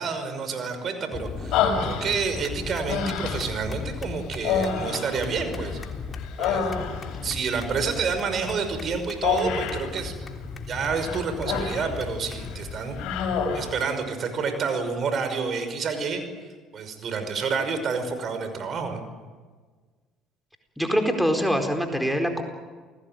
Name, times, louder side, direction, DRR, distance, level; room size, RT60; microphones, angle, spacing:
voice 1, 0.0-5.8 6.4-6.7 7.2-10.1 10.7-13.0 13.5-16.2 16.7-19.0, right 5 dB, 50° right, 8 dB, 5.8 m, -29 dB
sound 1, 1.1-13.8, left 5 dB, 35° left, 3.5 m, -37 dB
Human voice, 1.5-2.4 2.9-3.6 4.4-5.8 6.2-7.2 9.2-9.9 10.9-12.0 12.3-12.5 13.0-13.8, left 6 dB, 65° left, 5.6 m, -27 dB
voice 2, 20.8-22.4, equal, ahead, 5 dB, 4.3 m, -24 dB
29.0 x 20.0 x 9.2 m, 1.4 s
hypercardioid pair, 65°, 0 cm